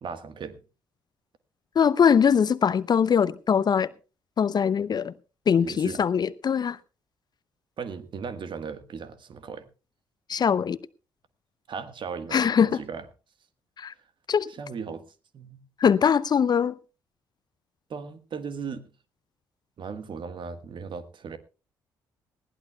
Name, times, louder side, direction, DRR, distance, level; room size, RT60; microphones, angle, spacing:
voice 1, 0.0-0.6 5.6-6.0 7.8-9.7 11.7-12.4 12.7-13.1 14.5-15.0 15.3-15.6 17.9-18.9 19.8-21.4, right 5 dB, 50° right, 1.4 m, -37 dB
voice 2, 1.8-3.9 4.4-5.1 5.5-6.8 10.3-10.8 12.3-12.8 13.8-13.9 14.3-14.5 15.8-16.8, left 7 dB, 40° left, 0.6 m, -22 dB
20.0 x 15.0 x 2.3 m
hypercardioid pair, 45°, 11 cm